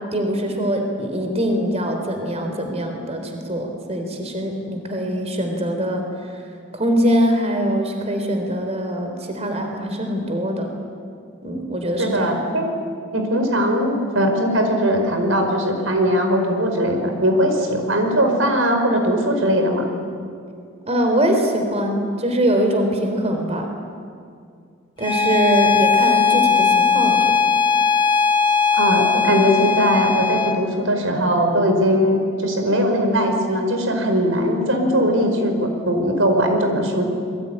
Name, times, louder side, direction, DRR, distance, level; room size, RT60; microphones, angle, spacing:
voice 1, 0.1-6.4 6.7-10.7 11.4-12.4 20.8-23.7 25.0-27.3 29.1-29.3, equal, 35° right, 4 dB, 3.9 m, -23 dB
voice 2, 12.0-12.7 13.1-19.8 28.8-37.0, equal, 90° right, 4 dB, 5.0 m, -20 dB
Bowed string instrument, 25.0-30.6, left 5 dB, 25° left, 1.4 m, -18 dB
27.0 x 22.0 x 10.0 m, 2.3 s
head